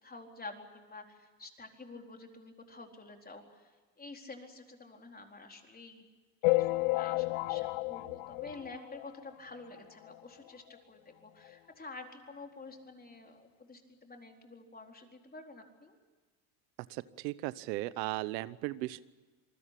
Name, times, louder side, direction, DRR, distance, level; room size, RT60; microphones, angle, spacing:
voice 1, 0.0-3.7 4.0-6.0 6.6-16.0, left 3 dB, 20° left, 3 dB, 4.2 m, -49 dB
sound 1, 6.4-9.3 9.8-9.9 10.0-10.2 10.5-10.6 11.4-11.5 12.0-12.1, left 21 dB, 70° left, 0.8 m, -32 dB
voice 2, 16.9-19.0, right 18 dB, 90° right, 16 dB, 1.1 m, -36 dB
27.5 x 20.5 x 8.5 m, 1.3 s
supercardioid pair, 105°, 49 cm